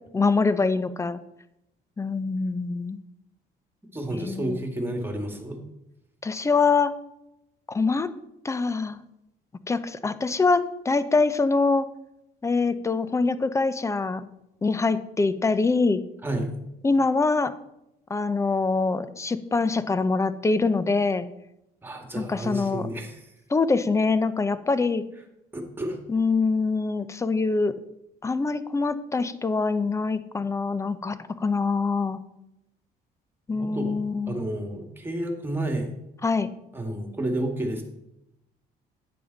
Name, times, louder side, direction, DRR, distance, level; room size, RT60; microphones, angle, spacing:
voice 1, 0.1-1.2 2.0-3.0 4.1-4.6 6.2-6.9 7.7-8.1 8.4-9.0 9.7-11.9 12.4-14.3 14.6-16.0 16.8-17.5 18.1-21.2 22.2-22.9 23.5-25.0 26.1-27.7 28.2-32.2 33.5-34.4 36.2-36.5, left 4 dB, 15° left, 13 dB, 0.7 m, -24 dB
voice 2, 3.9-5.6 16.2-16.5 21.8-23.2 25.5-26.0 33.5-34.0 34.3-35.9 36.7-37.8, right 1 dB, 10° right, 3 dB, 2.0 m, -30 dB
10.0 x 8.8 x 4.0 m, 0.85 s
cardioid pair, 110°, 17 cm